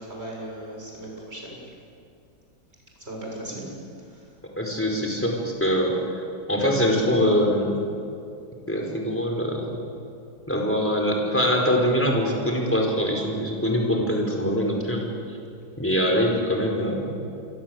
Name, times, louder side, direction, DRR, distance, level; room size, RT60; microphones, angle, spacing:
voice 1, 0.0-1.6 3.0-3.7 4.1-4.2, right 1 dB, 35° right, -2 dB, 7.2 m, -37 dB
voice 2, 4.6-6.2 6.5-7.8 8.7-9.8 10.5-15.4 15.8-17.2, equal, 5° left, 0 dB, 5.0 m, -23 dB
28.0 x 23.5 x 8.1 m, 2.5 s
omnidirectional pair, 1.9 m